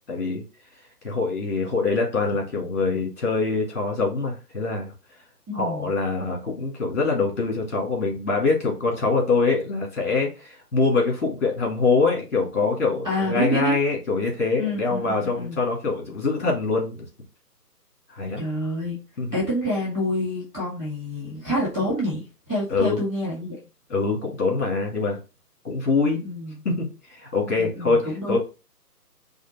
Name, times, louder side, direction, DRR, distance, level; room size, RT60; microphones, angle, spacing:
voice 1, 0.1-0.4 1.0-4.9 5.5-17.1 18.1-18.4 19.2-19.3 22.7-23.0 23.9-25.2 25.6-26.2 26.6-28.4, left 3 dB, 45° left, -1 dB, 2.1 m, -24 dB
voice 2, 5.5-5.9 13.0-13.7 14.6-15.6 18.4-19.0 19.3-23.6 26.2-26.5 27.4-28.4, equal, ahead, -19 dB, 1.0 m, -27 dB
4.9 x 2.1 x 4.1 m, 0.31 s
figure-of-eight pair, 150°, 49 cm